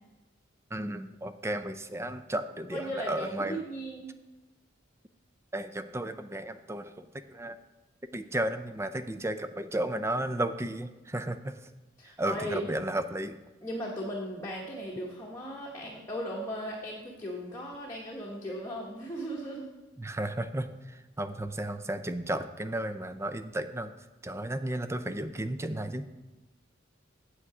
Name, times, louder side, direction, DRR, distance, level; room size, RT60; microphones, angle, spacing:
voice 1, 0.7-3.6 5.5-7.6 8.1-11.5 12.2-13.3 20.0-23.9 24.2-26.1, right 1 dB, 15° right, 10 dB, 0.4 m, -33 dB
voice 2, 2.7-4.1 12.0-12.6 13.6-19.7, equal, 15° left, -4 dB, 1.1 m, -37 dB
8.5 x 8.0 x 4.8 m, 1.1 s
head